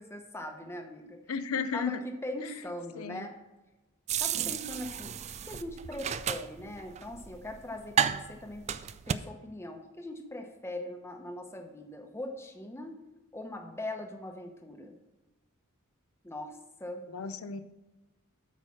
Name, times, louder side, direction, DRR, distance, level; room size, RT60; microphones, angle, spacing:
voice 1, 0.0-1.2 1.7-3.4 4.2-5.2 5.4-8.8 9.1-13.0 13.3-15.0 16.2-17.0, left 1 dB, 10° left, 4 dB, 0.9 m, -41 dB
voice 2, 1.3-2.0 2.4-2.5 3.0-3.3 17.1-17.6, left 6 dB, 80° left, 10 dB, 0.6 m, -34 dB
sound 1, 4.1-9.1, right 8 dB, 30° right, 0.3 m, -33 dB
8.5 x 4.9 x 6.3 m, 1.1 s
head